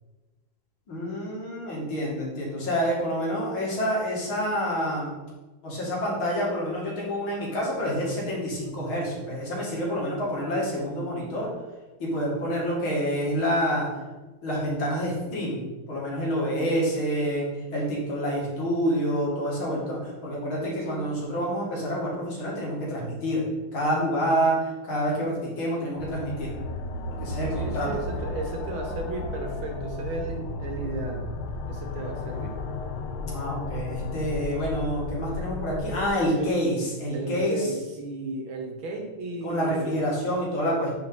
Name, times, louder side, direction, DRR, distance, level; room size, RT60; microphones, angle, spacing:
voice 1, 0.9-5.2 5.6-11.5 12.0-13.9 14.4-15.6 15.9-17.4 17.7-23.4 23.7-26.5 27.1-27.9 33.2-37.7 39.4-40.9, equal, 75° left, -4 dB, 2.7 m, -28 dB
voice 2, 20.6-21.0 27.5-31.3 31.7-32.5 36.4-36.8 37.1-40.0, right 3 dB, 75° right, 2 dB, 2.0 m, -34 dB
sound 1, 26.0-36.1, left 2 dB, 90° left, 1.5 m, -34 dB
9.4 x 3.9 x 3.5 m, 1.2 s
omnidirectional pair, 2.3 m